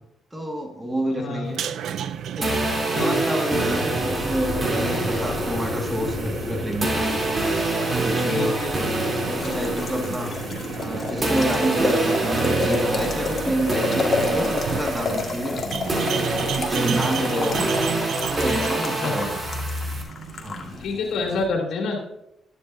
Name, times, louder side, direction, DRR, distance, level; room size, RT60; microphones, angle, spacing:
voice 1, 0.3-1.6 2.3-2.7 3.0-6.9 7.6-8.6 9.3-10.3 10.7-16.0 16.4-17.7 18.2-19.4 20.4-20.8, right 1 dB, 15° right, 2 dB, 1.9 m, -29 dB
voice 2, 1.2-1.5 2.9-3.2 8.2-8.7 17.2-17.6 19.0-19.3 20.8-22.0, left 3 dB, 70° left, 0 dB, 3.0 m, -27 dB
sound 1, 1.4-20.8, right 9 dB, 70° right, 0.5 m, -34 dB
sound 2, 2.4-10.9 11.2-20.0, right 2 dB, 30° right, 3.4 m, -26 dB
Boiling, 3.5-21.5, left 3 dB, 40° left, 1.9 m, -31 dB
12.0 x 12.0 x 2.7 m, 0.82 s
cardioid pair, 90°, 0 cm